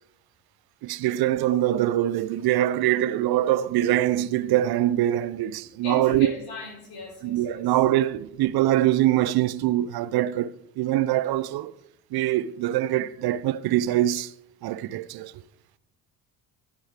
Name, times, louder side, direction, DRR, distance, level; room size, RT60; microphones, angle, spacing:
voice 1, 0.8-6.3 7.2-11.7 12.1-14.3 14.6-15.3, right 13 dB, 50° right, 0.7 m, -23 dB
voice 2, 5.8-7.8, left 4 dB, 50° left, 4.4 m, -37 dB
16.0 x 6.4 x 3.6 m
figure-of-eight pair, 45°, 48 cm